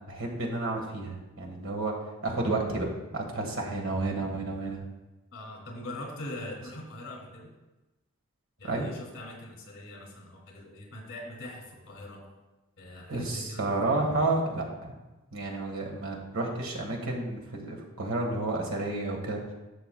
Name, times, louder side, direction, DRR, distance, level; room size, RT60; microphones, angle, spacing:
voice 1, 0.1-1.9 2.2-2.9 3.1-4.8 8.7-8.9 13.1-14.9 15.3-19.4, right 2 dB, 75° right, 1 dB, 1.4 m, -31 dB
voice 2, 5.3-7.5 8.6-12.2 12.8-13.7, left 1 dB, 60° left, 0 dB, 2.3 m, -42 dB
12.0 x 6.7 x 2.2 m, 1.1 s
head